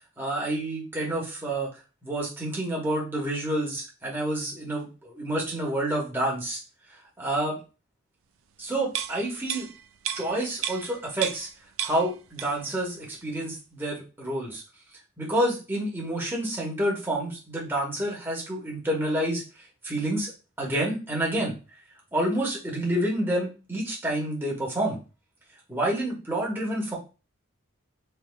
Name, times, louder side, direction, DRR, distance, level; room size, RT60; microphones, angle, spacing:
voice 1, 0.2-1.7 2.0-6.6 7.2-7.6 8.6-9.7 10.2-11.5 11.8-14.6 15.2-19.4 19.8-20.3 20.6-21.5 22.1-25.0 25.7-27.0, right 1 dB, 10° right, -3 dB, 1.1 m, -28 dB
sound 1, 8.9-11.5 11.8-12.7 13.1-13.2, right 9 dB, 75° right, 0.4 m, -33 dB
3.2 x 2.9 x 2.2 m, 0.31 s
head